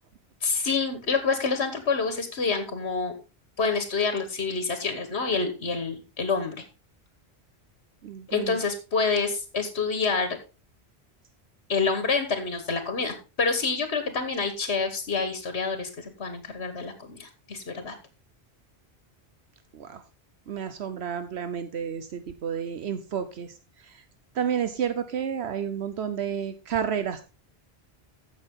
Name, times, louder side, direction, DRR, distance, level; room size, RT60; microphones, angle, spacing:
voice 1, 0.4-3.1 3.6-6.6 8.3-10.4 11.7-17.9, left 4 dB, 75° left, 8 dB, 1.7 m, -27 dB
voice 2, 8.0-8.6 19.7-20.0 20.5-23.5 23.9-24.0 24.3-27.2, right 8 dB, 80° right, 10 dB, 1.1 m, -31 dB
14.5 x 6.3 x 3.7 m, 0.32 s
omnidirectional pair, 1.1 m